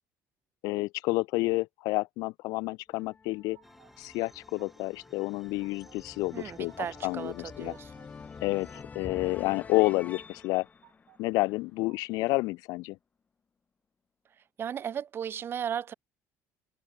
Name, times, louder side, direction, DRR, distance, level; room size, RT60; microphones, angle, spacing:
voice 1, 0.6-3.6 4.0-6.7 7.0-7.7 8.4-10.7 11.2-13.0, left 22 dB, 80° left, 0.9 m, -29 dB
sound 1, 2.9-11.9, left 5 dB, 25° left, 0.9 m, -48 dB
sound 2, 2.9-3.9 4.3-5.0 5.3-6.0 6.4-7.1 7.4-8.1 8.4-9.1 9.5-10.2 10.5-11.2 11.6-12.3, right 22 dB, 80° right, 4.4 m, -62 dB
sound 3, 3.6-8.8, equal, 5° right, 2.6 m, -59 dB
voice 2, 6.3-7.9 14.6-15.9, right 8 dB, 40° right, 0.6 m, -35 dB
cardioid pair, 120°, 6 cm